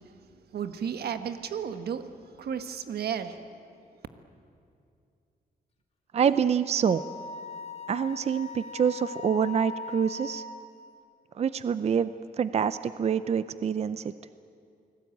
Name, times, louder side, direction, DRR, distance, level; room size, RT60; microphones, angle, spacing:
voice 1, 0.5-2.0 2.4-3.4, right 8 dB, 90° right, 9 dB, 1.5 m, -33 dB
voice 2, 6.1-7.0 7.9-10.4 11.4-12.1 12.4-14.1, right 7 dB, 40° right, 14 dB, 0.5 m, -26 dB
Wind instrument woodwind instrument, 6.8-10.7, left 4 dB, 40° left, 2.0 m, -40 dB
29.0 x 20.0 x 9.2 m, 2.5 s
wide cardioid pair, 165°, 16 cm